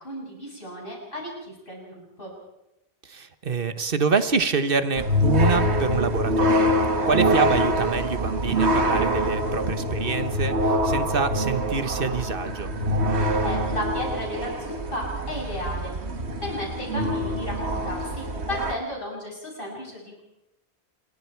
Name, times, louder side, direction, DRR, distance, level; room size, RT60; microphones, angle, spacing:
voice 1, 0.0-2.3 13.3-15.9 16.4-20.2, left 1 dB, 55° left, -2 dB, 8.0 m, -34 dB
voice 2, 3.1-6.8 7.1-12.8, right 5 dB, 55° right, 11 dB, 1.4 m, -26 dB
sound 1, 4.9-18.7, equal, 75° right, 2.0 m, -24 dB
27.5 x 22.5 x 4.6 m, 0.92 s
omnidirectional pair, 1.1 m